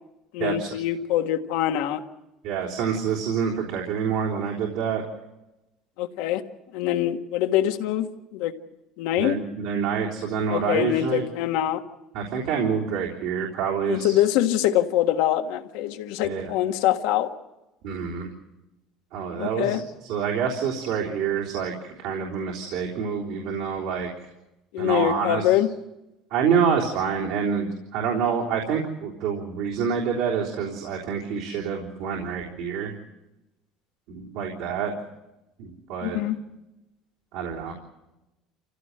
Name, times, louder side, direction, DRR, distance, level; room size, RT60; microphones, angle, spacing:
voice 1, 0.3-2.0 6.0-6.4 6.7-8.5 9.0-9.4 10.5-11.8 13.9-17.3 19.4-19.8 24.7-25.7 36.0-36.4, left 12 dB, 85° left, 6 dB, 1.6 m, -24 dB
voice 2, 2.4-5.0 9.2-11.3 12.1-14.2 16.2-16.5 17.8-18.3 19.1-19.8 20.1-24.1 24.8-25.5 26.3-32.9 34.1-34.9 35.6-36.2 37.3-37.7, right 6 dB, 75° right, -2 dB, 3.5 m, -27 dB
27.5 x 16.0 x 7.9 m, 0.97 s
cardioid pair, 140°, 0 cm